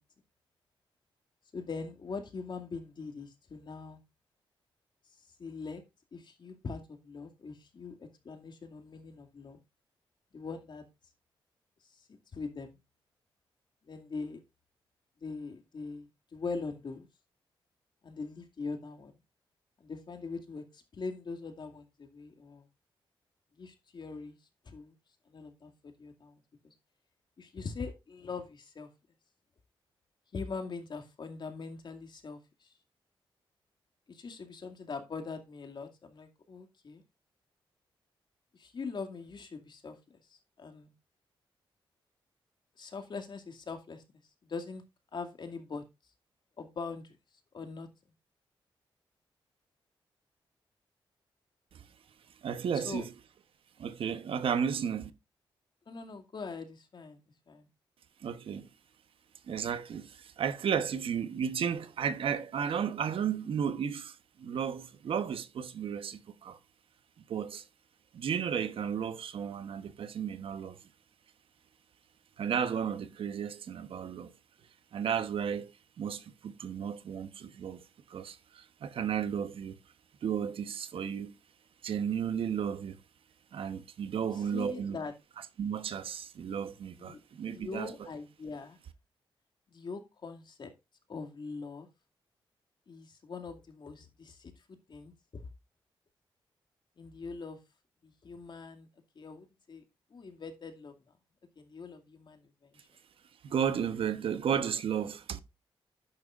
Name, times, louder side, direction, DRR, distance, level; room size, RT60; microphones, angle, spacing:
voice 1, 1.5-4.0 5.4-5.8 6.1-9.6 10.3-10.8 12.0-12.8 13.8-14.4 15.2-17.1 18.0-19.1 19.8-22.7 23.6-24.4 24.7-24.9 25.3-26.7 27.4-28.9 30.3-32.7 34.1-37.0 38.5-40.9 42.8-44.0 44.4-44.8 45.1-45.8 46.6-47.2 47.5-47.9 52.7-53.1 55.9-57.2 57.5-57.7 84.2-85.1 87.0-87.2 87.5-88.8 89.7-90.7 91.1-91.9 92.9-95.4 97.0-97.6 98.0-98.9 99.2-99.8 100.1-100.9 101.6-102.8, left 4 dB, 55° left, 2.3 m, -42 dB
voice 2, 52.4-53.1 53.8-55.1 58.2-58.7 59.5-66.6 67.3-67.6 68.1-70.8 72.4-74.3 74.9-75.7 76.0-77.8 78.1-79.7 80.2-81.4 81.8-83.0 83.5-85.0 85.6-87.9 103.4-105.4, right 7 dB, 75° right, 1.1 m, -33 dB
11.5 x 8.9 x 2.5 m
cardioid pair, 75°, 9 cm